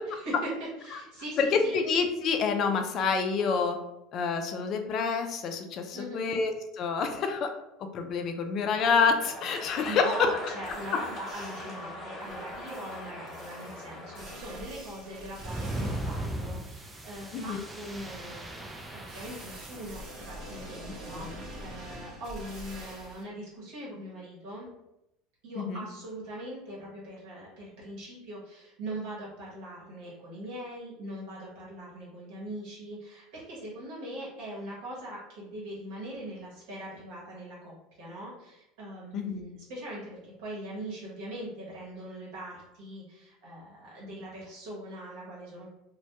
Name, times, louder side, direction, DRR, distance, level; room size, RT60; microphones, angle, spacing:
voice 1, 0.1-0.5 0.8-1.8 5.9-6.3 9.6-24.7 25.4-45.7, right 1 dB, 70° right, -5 dB, 0.9 m, -41 dB
voice 2, 1.4-3.8 4.1-7.5 7.9-10.3 17.3-17.6 21.1-21.3 25.6-25.8 39.1-39.4, left 5 dB, 50° left, 6 dB, 0.4 m, -27 dB
sound 1, 8.8-14.4, left 1 dB, 30° left, 1.1 m, -41 dB
sound 2, 10.3-10.4 10.6-11.9 12.2-16.2 19.1-23.2, right 1 dB, 45° right, 0.8 m, -45 dB
sound 3, 15.4-20.3, right 1 dB, 15° right, 0.4 m, -38 dB
2.2 x 2.1 x 2.8 m, 0.87 s
hypercardioid pair, 90°, 0 cm